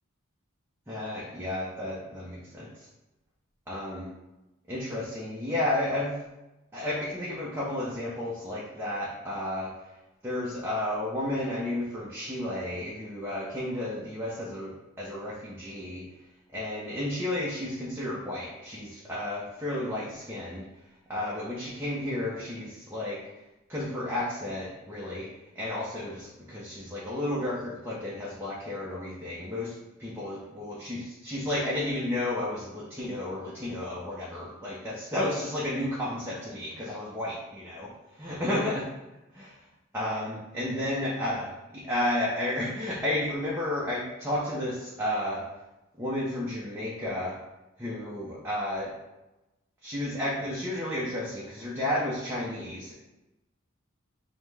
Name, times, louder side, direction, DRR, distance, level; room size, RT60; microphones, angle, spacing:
voice 1, 0.9-2.9 3.7-4.1 4.7-6.2 6.7-9.7 10.2-16.0 16.5-20.6 21.1-23.2 23.7-25.3 25.5-38.9 39.3-39.6 39.9-45.4 46.0-47.4 47.8-48.9 49.8-52.9, left 1 dB, 10° right, -6 dB, 0.6 m, -32 dB
5.4 x 2.1 x 3.2 m, 1.0 s
head